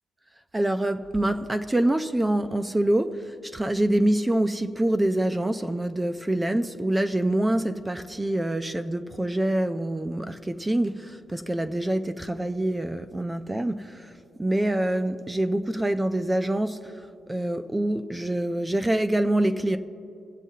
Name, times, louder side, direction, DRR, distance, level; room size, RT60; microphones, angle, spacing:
voice 1, 0.5-14.1 14.4-19.8, right 1 dB, 10° right, 0.3 m, -26 dB
23.0 x 8.2 x 2.8 m
cardioid pair, 155°, 0 cm